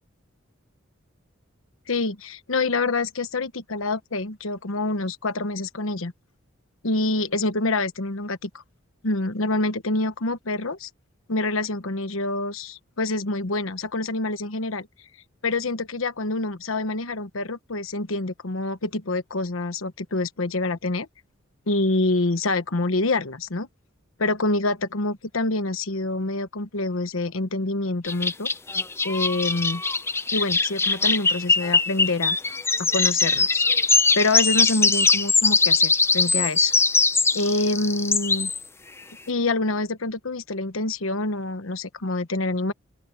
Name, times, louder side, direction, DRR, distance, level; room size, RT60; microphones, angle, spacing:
voice 1, 1.9-6.1 6.8-8.5 9.0-10.9 11.3-14.9 15.4-21.1 21.7-23.7 24.2-28.5 29.0-29.8 30.3-32.4 32.8-33.6 34.1-36.7 37.3-38.5 39.3-42.7, left 2 dB, 80° left, 1.2 m, -26 dB
sound 1, 28.0-38.6, left 4 dB, 15° left, 0.6 m, -21 dB
open air
head